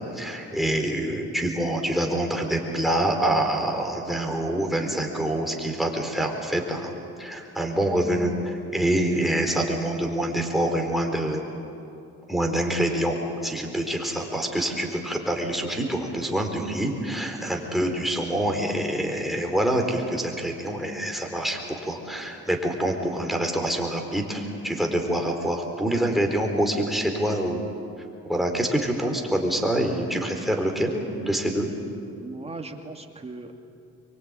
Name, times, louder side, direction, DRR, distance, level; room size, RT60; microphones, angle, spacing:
voice 1, 0.0-6.9 7.2-11.4 12.3-27.6 28.3-31.7, right 1 dB, ahead, 2 dB, 4.3 m, -26 dB
voice 2, 32.2-33.6, right 3 dB, 20° right, 3 dB, 2.4 m, -38 dB
24.0 x 23.5 x 9.1 m, 2.6 s
cardioid pair, 90°, 30 cm